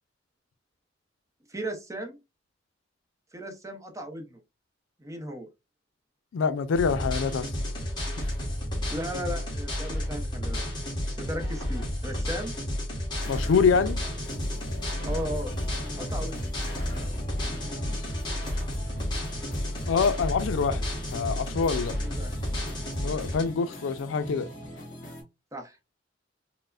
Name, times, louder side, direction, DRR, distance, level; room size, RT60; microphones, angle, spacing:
voice 1, 1.5-2.2 3.3-4.4 5.0-5.5 8.9-10.7 11.2-12.5 15.0-15.5 16.0-16.4 22.0-22.4 25.5-25.8, equal, 15° right, 0.7 m, -36 dB
voice 2, 6.3-7.5 13.3-14.0 19.9-20.8 21.1-21.9 23.0-24.5, left 5 dB, 80° left, 0.4 m, -25 dB
sound 1, 6.7-23.4, left 1 dB, 25° left, 1.4 m, -31 dB
sound 2, 13.2-25.2, left 1 dB, 45° left, 1.6 m, -44 dB
4.5 x 2.0 x 2.4 m
head